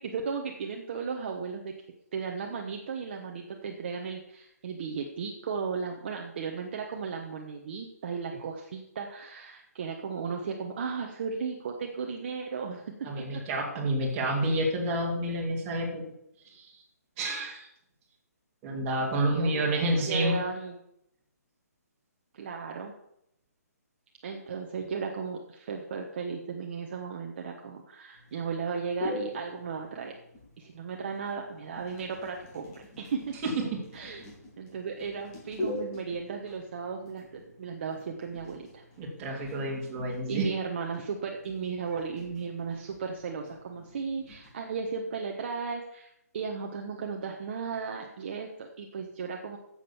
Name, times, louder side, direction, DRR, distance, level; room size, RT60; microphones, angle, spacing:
voice 1, 0.0-1.7 2.1-13.2 19.2-20.8 22.3-22.9 24.2-30.1 30.6-33.3 33.9-38.8 39.4-39.6 40.3-49.6, right 5 dB, 40° right, 2 dB, 1.2 m, -35 dB
voice 2, 13.0-16.1 16.4-16.8 17.2-17.7 18.6-20.4 33.4-33.5 39.0-40.5, right 1 dB, 20° right, -2 dB, 2.7 m, -29 dB
sound 1, 28.1-44.6, left 1 dB, 20° left, 2.8 m, -43 dB
9.7 x 7.7 x 7.1 m, 0.79 s
hypercardioid pair, 170°, 9 cm